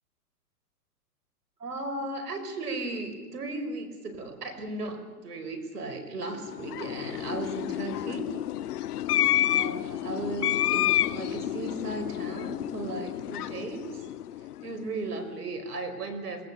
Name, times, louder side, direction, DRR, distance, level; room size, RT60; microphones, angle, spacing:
voice 1, 1.6-8.3 9.4-14.0 14.6-16.4, right 2 dB, 80° right, 8 dB, 5.5 m, -36 dB
sound 1, 6.4-14.9, left 13 dB, 80° left, 0.6 m, -29 dB
27.0 x 20.5 x 7.1 m, 1.3 s
hypercardioid pair, 125°, 45 cm